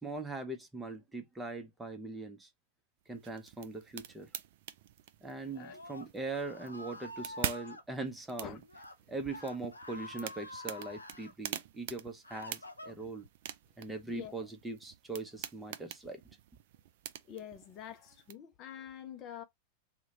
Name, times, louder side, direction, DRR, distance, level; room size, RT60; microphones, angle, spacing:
voice 1, 0.0-2.5 3.1-4.3 5.2-8.6 9.1-13.3 13.8-16.2, right 3 dB, 10° right, 0.7 m, -41 dB
sound 1, 3.1-18.3, right 12 dB, 55° right, 0.4 m, -46 dB
Screaming, 5.4-7.8 8.6-8.9 9.3-11.3 11.9-13.3, left 2 dB, 80° left, 0.6 m, -48 dB
voice 2, 14.1-14.5 17.3-19.4, left 9 dB, 35° left, 0.5 m, -46 dB
2.8 x 2.1 x 3.8 m
figure-of-eight pair, 90°, 0 cm